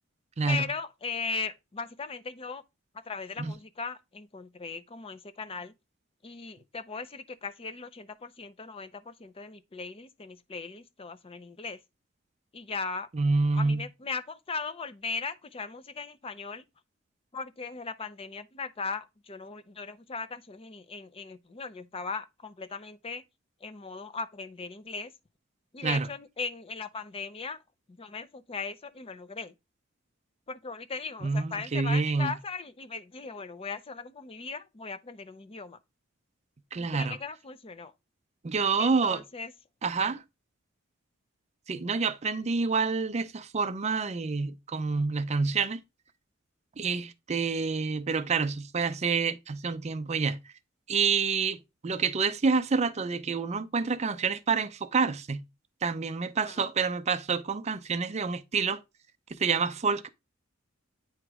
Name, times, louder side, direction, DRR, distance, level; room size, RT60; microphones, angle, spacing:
voice 1, 0.5-2.6 3.0-5.7 6.2-11.8 12.5-13.1 13.5-16.6 17.3-23.2 23.6-25.1 25.7-27.6 28.0-29.5 30.5-35.8 36.9-37.9 38.7-39.5 40.0-40.1 56.4-56.6, left 4 dB, 30° left, 0.5 m, -38 dB
voice 2, 13.1-13.8 25.8-26.1 31.2-32.3 36.7-37.2 38.4-39.2 39.8-40.2 41.7-45.8 46.8-50.4 50.9-55.4 55.8-58.8 59.4-60.1, right 4 dB, 35° right, 0.5 m, -28 dB
8.9 x 3.0 x 4.7 m
head